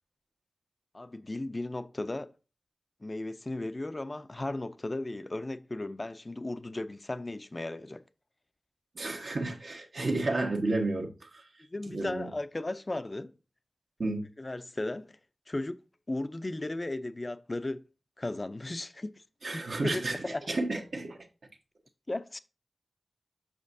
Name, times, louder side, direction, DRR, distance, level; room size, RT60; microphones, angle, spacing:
voice 1, 0.9-2.3 3.0-8.0 11.7-13.3 14.4-15.2 15.5-15.8 16.1-17.8 18.2-19.1 19.5-20.0 20.3-20.4 22.1-22.4, left 2 dB, 30° left, 0.5 m, -35 dB
voice 2, 8.9-11.5 11.9-12.3 14.0-14.3 19.4-21.3, right 2 dB, 65° right, 1.2 m, -32 dB
7.4 x 6.2 x 2.6 m
wide cardioid pair, 105°, 0 cm